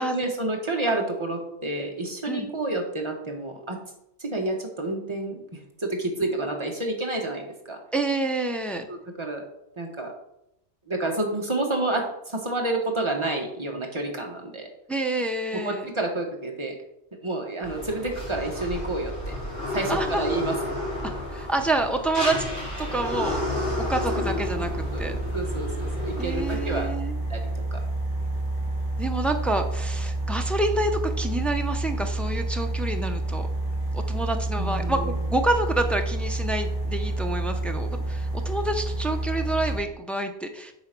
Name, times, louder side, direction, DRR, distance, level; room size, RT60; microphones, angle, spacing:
voice 1, 0.0-3.8 4.2-5.4 5.8-7.8 8.9-9.4 9.8-10.1 10.9-14.7 15.5-16.7 17.2-19.3 19.7-20.5 24.9-26.9 27.3-27.8 34.6-35.2, right 2 dB, 25° right, 1 dB, 1.5 m, -29 dB
voice 2, 7.9-8.9 14.9-15.9 19.9-20.2 21.0-22.4 22.8-23.4 23.9-25.1 26.2-27.2 29.0-33.5 33.9-40.7, right 2 dB, ahead, 4 dB, 0.6 m, -28 dB
sound 1, 17.6-26.8, left 1 dB, 85° left, 3.3 m, -31 dB
sound 2, 22.9-39.8, right 2 dB, 75° right, 2.4 m, -29 dB
8.6 x 4.0 x 6.0 m, 0.80 s
omnidirectional pair, 1.1 m